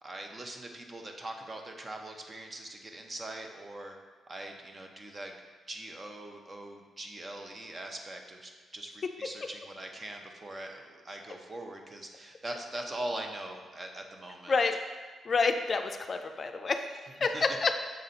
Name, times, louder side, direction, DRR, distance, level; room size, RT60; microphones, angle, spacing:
voice 1, 0.0-4.0 4.3-5.4 5.7-14.6 17.2-17.4, right 1 dB, 30° right, 3 dB, 0.8 m, -42 dB
voice 2, 15.3-16.9 17.2-17.7, left 4 dB, 45° left, 6 dB, 0.4 m, -28 dB
6.6 x 4.0 x 4.0 m, 1.5 s
cardioid pair, 70°, 0 cm